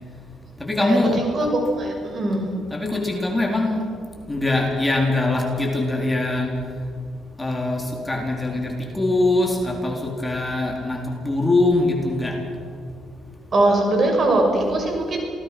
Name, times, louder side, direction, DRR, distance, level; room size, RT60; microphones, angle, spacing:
voice 1, 0.6-1.2 2.7-3.8 4.3-6.5 7.4-12.3, left 2 dB, 15° left, 0 dB, 4.3 m, -22 dB
voice 2, 1.4-2.5 13.5-15.2, right 2 dB, 45° right, 2 dB, 6.6 m, -21 dB
28.0 x 18.5 x 6.2 m, 2.2 s
cardioid pair, 90°, 0 cm